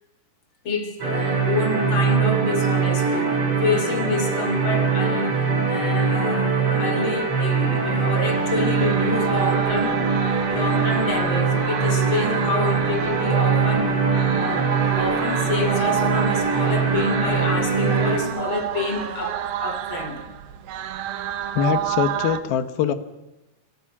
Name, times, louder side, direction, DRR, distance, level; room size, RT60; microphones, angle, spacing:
voice 1, 0.6-3.3 3.6-10.0 10.5-14.0 14.4-14.7 14.9-20.2 21.7-21.8, left 4 dB, 35° left, 3.1 m, -28 dB
sound 1, 1.0-18.2, right 5 dB, 35° right, 6.1 m, -22 dB
sound 2, 8.1-22.4, right 11 dB, 70° right, 2.8 m, -29 dB
voice 2, 21.6-22.9, left 9 dB, 75° left, 3.1 m, -23 dB
27.5 x 24.5 x 6.1 m
omnidirectional pair, 4.5 m